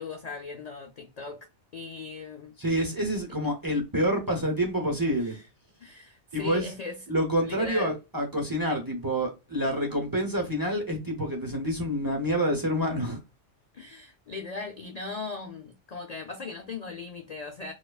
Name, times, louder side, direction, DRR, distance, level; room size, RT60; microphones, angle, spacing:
voice 1, 0.0-1.5 1.7-2.6 5.2-5.4 5.8-7.0 7.4-8.0 13.7-17.7, left 4 dB, 55° left, 0.4 m, -38 dB
voice 2, 2.6-5.3 6.3-6.6 7.1-13.2, equal, 20° right, 0.6 m, -27 dB
4.6 x 2.3 x 2.3 m
omnidirectional pair, 1.2 m